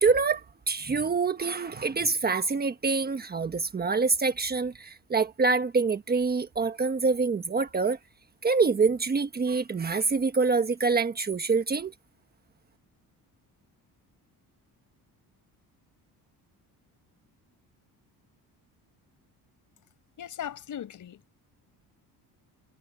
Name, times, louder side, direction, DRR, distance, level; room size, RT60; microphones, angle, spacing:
voice 1, 0.0-8.0 8.4-11.9, right 4 dB, 25° right, 1.3 m, -26 dB
voice 2, 20.2-21.4, left 9 dB, 50° left, 5.6 m, -39 dB
cardioid pair, 140°, 38 cm